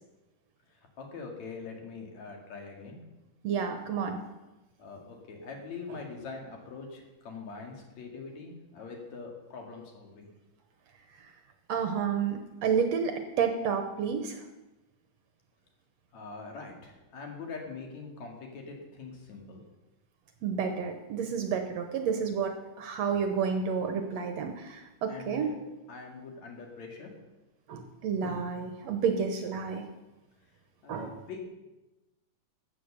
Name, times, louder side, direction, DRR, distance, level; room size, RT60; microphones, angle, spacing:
voice 1, 0.7-3.0 4.8-10.3 16.1-19.6 25.1-25.6 25.9-27.1 30.8-31.4, left 4 dB, 60° left, 1 dB, 3.3 m, -43 dB
voice 2, 3.4-4.2 11.7-14.4 20.4-25.6 27.7-29.8 30.9-31.1, right 6 dB, 70° right, 6 dB, 1.9 m, -30 dB
13.5 x 8.7 x 6.8 m, 1.0 s
omnidirectional pair, 3.7 m